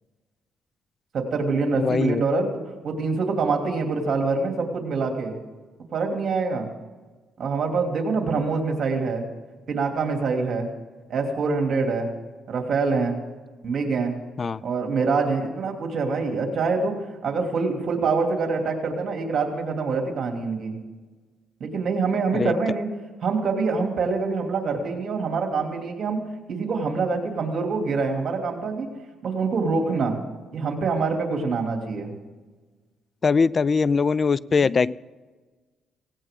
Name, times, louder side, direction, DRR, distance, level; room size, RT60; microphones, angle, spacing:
voice 1, 1.1-2.5 2.8-5.4 5.9-6.7 7.4-9.3 9.7-10.7 11.1-12.1 12.5-13.2 13.6-14.2 14.6-16.9 17.2-20.8 21.6-22.9 23.2-26.2 26.5-28.9 29.2-30.2 30.5-32.1, right 4 dB, 55° right, 3 dB, 2.8 m, -25 dB
voice 2, 1.7-2.2 14.4-14.6 22.3-22.5 33.2-34.9, left 5 dB, 40° left, 21 dB, 0.4 m, -21 dB
17.5 x 17.5 x 3.8 m, 1.3 s
cardioid pair, 90°, 0 cm